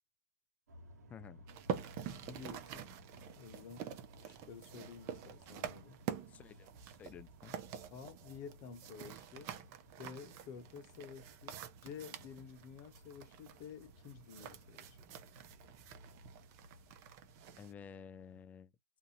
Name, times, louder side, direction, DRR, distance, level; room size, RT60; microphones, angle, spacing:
sound 1, 0.7-18.4, left 1 dB, 80° right, 1.2 m, -60 dB
voice 1, 1.1-1.5 6.3-6.7 7.0-7.5 17.6-18.7, left 7 dB, 15° left, 0.3 m, -52 dB
sound 2, 1.5-17.7, right 9 dB, 35° right, 0.6 m, -47 dB
voice 2, 2.3-3.0 3.4-4.0 4.2-6.0 7.9-9.7 10.0-15.1, left 6 dB, 40° left, 1.2 m, -51 dB
2.6 x 2.5 x 2.8 m
hypercardioid pair, 125°, 9 cm